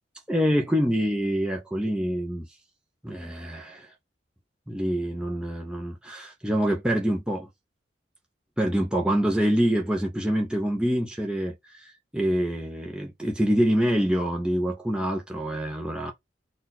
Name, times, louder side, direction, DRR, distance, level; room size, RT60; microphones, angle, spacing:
voice 1, 0.3-2.5 3.0-3.9 4.7-7.5 8.6-16.1, equal, 5° right, 0.7 m, -26 dB
4.1 x 2.5 x 4.1 m
head